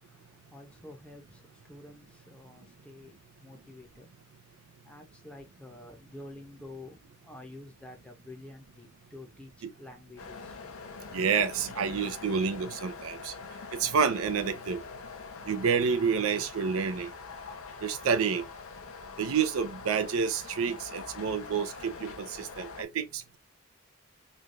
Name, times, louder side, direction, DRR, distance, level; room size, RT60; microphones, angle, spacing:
voice 1, 0.0-4.1 4.8-10.6, left 2 dB, 5° left, 0.6 m, -49 dB
sound 1, 10.2-22.8, left 4 dB, 90° left, 0.6 m, -44 dB
voice 2, 11.1-13.3 13.8-14.8 15.5-17.1 17.8-18.4 19.2-23.4, right 6 dB, 85° right, 0.5 m, -29 dB
3.2 x 2.3 x 2.5 m
head